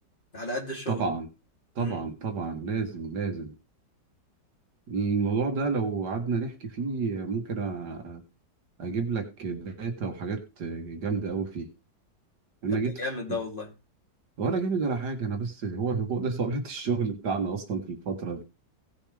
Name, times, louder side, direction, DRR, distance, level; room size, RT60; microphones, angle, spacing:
voice 1, 0.3-1.0 1.8-2.0 12.7-13.7, left 2 dB, 30° left, -1 dB, 3.3 m, -34 dB
voice 2, 0.9-1.3 1.8-3.6 4.9-8.2 8.8-11.7 12.6-13.0 13.3-13.4 14.4-18.4, right 4 dB, 70° right, 5 dB, 2.1 m, -30 dB
17.5 x 7.0 x 3.4 m, 0.27 s
omnidirectional pair, 1.9 m